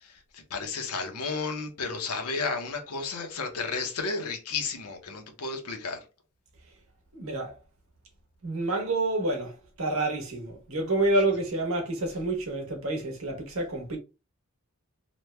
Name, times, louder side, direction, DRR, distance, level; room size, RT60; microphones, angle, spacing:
voice 1, 0.0-6.0, left 4 dB, 90° left, 0.8 m, -33 dB
voice 2, 7.1-7.5 8.4-14.0, right 2 dB, 70° right, 1.1 m, -28 dB
3.1 x 2.2 x 3.1 m
head